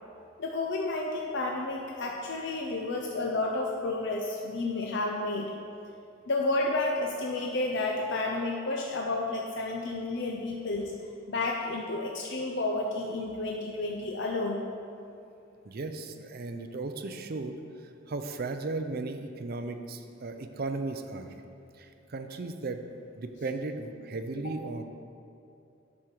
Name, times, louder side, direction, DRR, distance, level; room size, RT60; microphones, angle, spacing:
voice 1, 0.4-5.5 6.3-10.9 11.3-14.7, left 2 dB, 65° left, 0 dB, 0.6 m, -31 dB
voice 2, 15.6-17.6 18.1-21.3 21.8-22.9 23.2-24.8, right 3 dB, 50° right, 7 dB, 0.5 m, -36 dB
8.4 x 6.3 x 4.5 m, 2.6 s
head